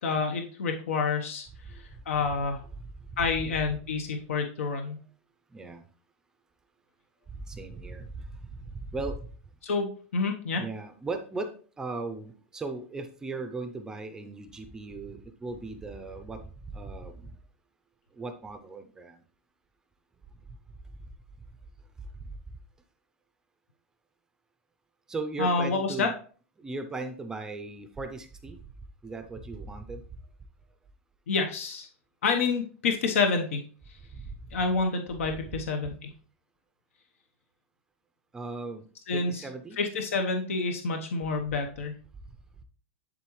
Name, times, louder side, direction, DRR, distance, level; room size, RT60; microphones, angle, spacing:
voice 1, 0.0-1.5 2.1-2.6 3.2-5.0 9.6-10.6 25.4-26.1 31.3-31.9 32.2-33.6 34.5-36.1 39.1-39.4 39.8-42.0, left 4 dB, 85° left, 4 dB, 1.0 m, -28 dB
voice 2, 7.5-8.1 8.9-9.2 10.6-11.5 11.8-16.4 16.7-17.3 18.2-19.2 25.1-26.1 26.6-28.6 29.0-30.0 38.3-38.8 39.1-39.8, right 3 dB, 10° right, 7 dB, 0.5 m, -37 dB
11.0 x 3.7 x 3.1 m, 0.41 s
supercardioid pair, 160°, 7 cm